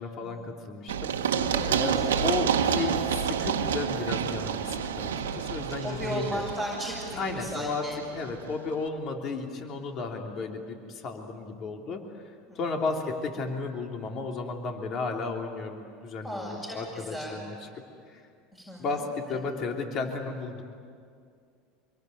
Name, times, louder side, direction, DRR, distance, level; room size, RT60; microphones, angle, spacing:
voice 1, 0.0-6.4 7.2-7.8 8.1-17.5 18.1-18.2 18.8-20.6, left 3 dB, 50° left, 2 dB, 3.3 m, -34 dB
Run, 0.9-8.5, right 7 dB, 90° right, 1.4 m, -29 dB
voice 2, 1.5-1.9 5.2-8.0 12.5-12.6 16.2-17.4 18.5-19.4, equal, 15° left, -3 dB, 6.7 m, -37 dB
26.0 x 22.5 x 9.5 m, 2.3 s
hypercardioid pair, 85°, 0 cm